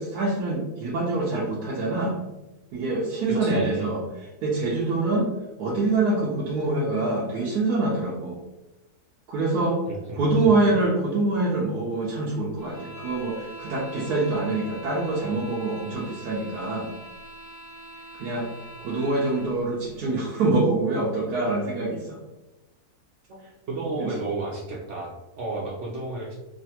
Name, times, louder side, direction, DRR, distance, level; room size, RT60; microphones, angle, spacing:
voice 1, 0.0-2.2 2.7-5.3 5.6-8.4 9.3-9.8 10.1-16.9 18.1-18.5 18.8-22.2 24.0-24.1, right 2 dB, 85° right, -5 dB, 1.2 m, -25 dB
voice 2, 3.3-3.9 9.9-10.6 23.3-26.4, right 2 dB, 65° right, -2 dB, 0.8 m, -33 dB
sound 1, 12.6-19.6, right 1 dB, 75° left, 0.4 m, -43 dB
3.2 x 2.5 x 2.8 m, 1.0 s
omnidirectional pair, 1.7 m